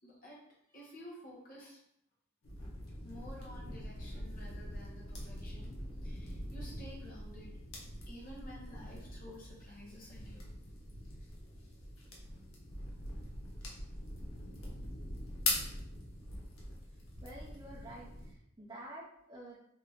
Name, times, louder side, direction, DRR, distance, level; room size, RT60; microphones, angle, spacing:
voice 1, 0.0-0.4 0.7-1.8 3.0-5.8 6.0-7.5 8.1-10.5, equal, 40° left, -4 dB, 1.0 m, -52 dB
sound 1, 2.4-18.3, left 1 dB, 75° left, 0.8 m, -43 dB
voice 2, 17.2-19.6, right 1 dB, 20° right, -6 dB, 0.4 m, -49 dB
2.8 x 2.5 x 3.4 m, 0.73 s
head